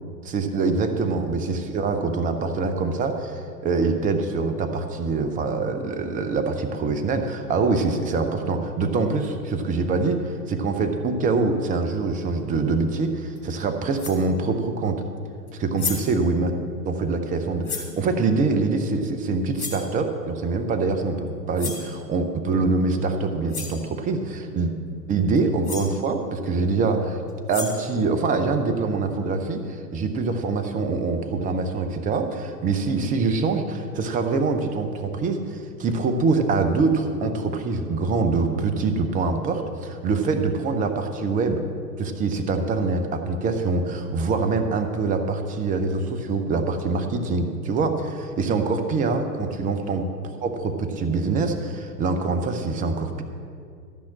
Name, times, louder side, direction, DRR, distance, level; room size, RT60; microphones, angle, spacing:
voice 1, 0.2-15.0 15.5-16.5 16.9-24.7 25.1-27.2 27.5-41.6 42.0-53.2, right 4 dB, 15° right, 7 dB, 0.8 m, -24 dB
sound 1, 13.4-13.5 14.0-14.3 15.5-15.6 15.8-16.2 17.6-18.0 19.5-19.9 21.6-21.9 23.1-23.2 23.5-23.8 25.4-25.5 25.6-26.0 27.3-27.9, left 5 dB, 60° left, 3.1 m, -32 dB
14.0 x 5.8 x 7.5 m, 2.3 s
figure-of-eight pair, 100°, 50 cm